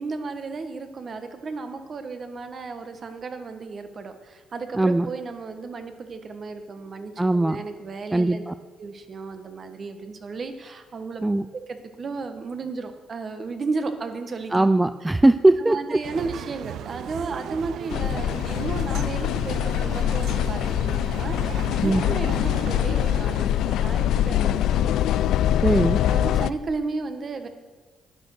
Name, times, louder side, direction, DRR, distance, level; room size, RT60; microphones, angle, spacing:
voice 1, 0.0-8.5 8.8-11.2 11.5-14.6 15.0-15.1 15.5-25.0 26.1-27.5, right 4 dB, 45° right, 7 dB, 1.3 m, -34 dB
voice 2, 4.8-5.1 7.2-7.6 8.1-8.5 11.2-11.4 14.5-16.0 21.8-22.0 25.6-26.0, right 2 dB, 15° right, 12 dB, 0.3 m, -20 dB
sound 1, 16.0-23.4, right 10 dB, 80° right, 0.5 m, -36 dB
sound 2, 17.9-26.5, left 11 dB, 80° left, 0.3 m, -23 dB
10.5 x 9.0 x 6.4 m, 1.3 s
cardioid pair, 90°, 0 cm